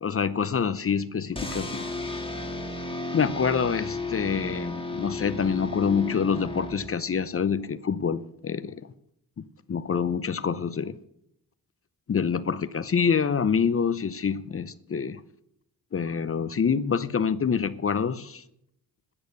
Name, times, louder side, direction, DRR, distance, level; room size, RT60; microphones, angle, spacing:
voice 1, 0.0-1.9 3.1-8.8 9.7-10.9 12.1-15.2 15.9-18.4, left 6 dB, 35° left, 0.7 m, -26 dB
sound 1, 1.4-7.2, left 2 dB, 15° left, 1.9 m, -34 dB
13.0 x 8.9 x 6.7 m
cardioid pair, 80°, 40 cm